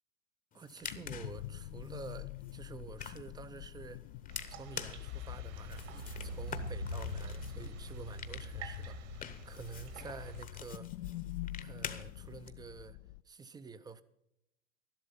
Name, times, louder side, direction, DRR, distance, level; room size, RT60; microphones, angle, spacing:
sound 1, 0.5-12.5, left 7 dB, 20° left, 0.9 m, -48 dB
voice 1, 0.5-4.0 4.5-9.0 9.5-10.9 11.6-13.0 13.3-14.0, right 5 dB, 10° right, 0.5 m, -49 dB
sound 2, 0.8-13.2, left 16 dB, 45° left, 0.4 m, -45 dB
sound 3, 4.3-10.4, right 3 dB, 60° right, 1.9 m, -45 dB
12.5 x 11.5 x 5.5 m
hypercardioid pair, 100°, 40 cm